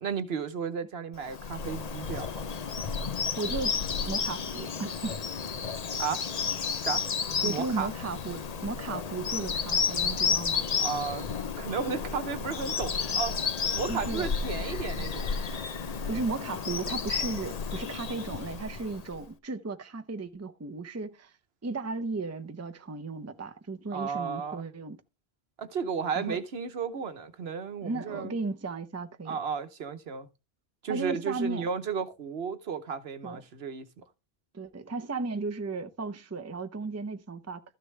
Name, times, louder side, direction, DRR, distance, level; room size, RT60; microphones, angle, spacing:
voice 1, 0.0-2.4 6.0-6.3 6.7-7.0 7.4-7.9 10.8-11.3 11.6-13.3 13.7-15.3 23.9-24.7 25.6-28.4 29.3-30.3 30.8-34.0, right 6 dB, 75° right, 1.2 m, -33 dB
Bird vocalization bird call bird song, 1.2-19.2, left 6 dB, 45° left, 0.7 m, -32 dB
voice 2, 3.4-3.8 4.1-5.1 7.4-10.7 13.9-14.3 16.1-21.3 21.6-25.0 26.1-26.4 27.8-29.4 30.9-31.7 33.2-33.4 34.5-37.6, right 3 dB, 20° right, 0.6 m, -35 dB
13.5 x 6.7 x 3.3 m
omnidirectional pair, 1.1 m